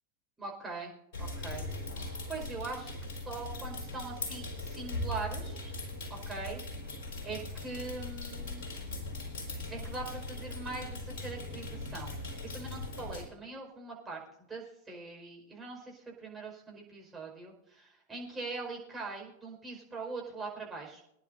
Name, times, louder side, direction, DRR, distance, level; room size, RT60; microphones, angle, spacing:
voice 1, 0.4-0.9 1.2-1.7 1.9-2.9 3.2-5.8 6.3-6.6 7.2-8.7 9.7-14.2 14.5-21.0, right 3 dB, 10° right, -2 dB, 5.1 m, -42 dB
sound 1, 1.1-13.3, left 2 dB, 50° left, 4.4 m, -40 dB
25.0 x 10.5 x 2.7 m, 0.80 s
figure-of-eight pair, 90°, 0 cm